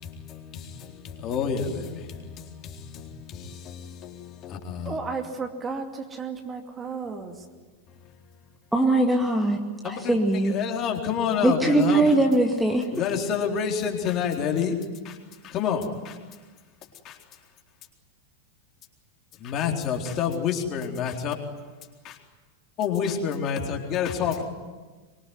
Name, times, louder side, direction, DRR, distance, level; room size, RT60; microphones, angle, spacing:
voice 1, 0.0-5.0 9.8-12.1 12.9-14.8 15.0-15.2 15.4-16.2 17.0-17.2 19.4-21.3 22.0-22.2 22.8-24.4, left 7 dB, 35° left, 4.0 m, -29 dB
voice 2, 4.9-5.8 6.1-7.3, right 4 dB, 20° right, 2.5 m, -33 dB
voice 3, 8.7-9.6 9.8-10.6 11.4-12.8, right 2 dB, 5° right, 2.3 m, -21 dB
24.5 x 24.0 x 9.6 m
figure-of-eight pair, 90°, 0 cm